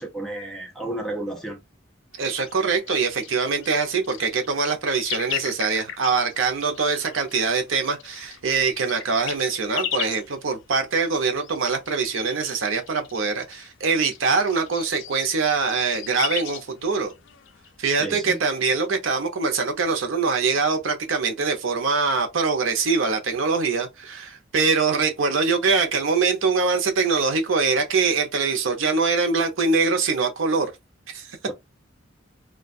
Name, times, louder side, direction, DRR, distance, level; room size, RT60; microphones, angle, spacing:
voice 1, 0.0-1.6 17.9-18.4 31.5-31.6, right 1 dB, ahead, 0.5 m, -32 dB
sound 1, 2.1-17.9, left 10 dB, 70° left, 0.3 m, -37 dB
voice 2, 2.2-17.1 17.8-30.7 31.1-31.4, right 4 dB, 85° right, 0.6 m, -23 dB
2.3 x 2.2 x 2.5 m
head